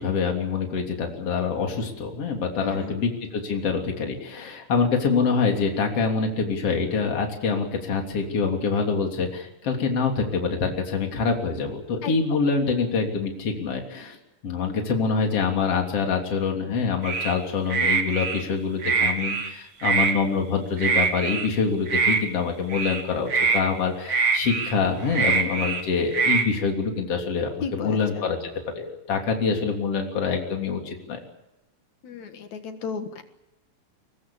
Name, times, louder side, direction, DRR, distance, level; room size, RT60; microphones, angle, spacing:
voice 1, 0.0-14.2 14.4-28.5 28.7-31.2, left 5 dB, 45° left, 2 dB, 4.2 m, -25 dB
voice 2, 2.6-2.9 12.0-12.4 27.6-28.2 32.0-33.2, left 5 dB, 60° left, 7 dB, 2.8 m, -34 dB
sound 1, 17.0-17.3 17.7-18.4 18.8-19.5 19.8-20.1 20.8-21.5 21.9-22.2 22.7-23.0 23.3-23.6 24.1-24.7 25.1-25.8 26.1-26.4, right 5 dB, 40° right, 2.4 m, -23 dB
24.0 x 20.5 x 7.2 m, 0.93 s
omnidirectional pair, 3.9 m